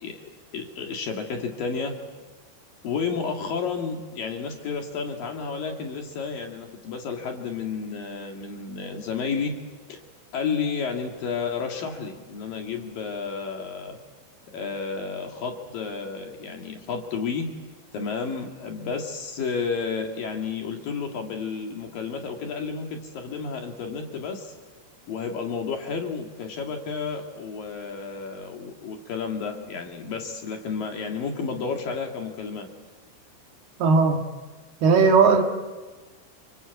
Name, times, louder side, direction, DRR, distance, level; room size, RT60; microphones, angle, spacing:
voice 1, 0.0-1.9 2.8-9.5 9.9-10.0 10.3-14.0 14.5-17.5 17.9-24.5 25.1-32.7, left 5 dB, 55° left, 3 dB, 3.3 m, -31 dB
voice 2, 33.8-34.2 34.8-35.4, right 4 dB, 65° right, 4 dB, 3.4 m, -17 dB
28.0 x 25.5 x 8.3 m, 1.3 s
omnidirectional pair, 5.4 m